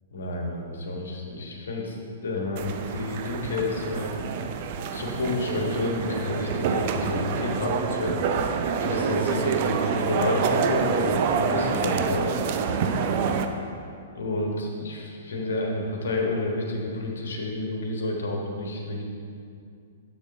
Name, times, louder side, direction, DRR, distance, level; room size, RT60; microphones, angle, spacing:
voice 1, 0.1-2.0 2.2-4.1 4.9-8.2 8.8-12.3 14.1-19.0, left 2 dB, 65° left, 0 dB, 1.3 m, -29 dB
sound 1, 2.6-13.5, right 6 dB, 45° right, 0.5 m, -27 dB
7.1 x 6.7 x 3.7 m, 2.4 s
figure-of-eight pair, 110°, 0 cm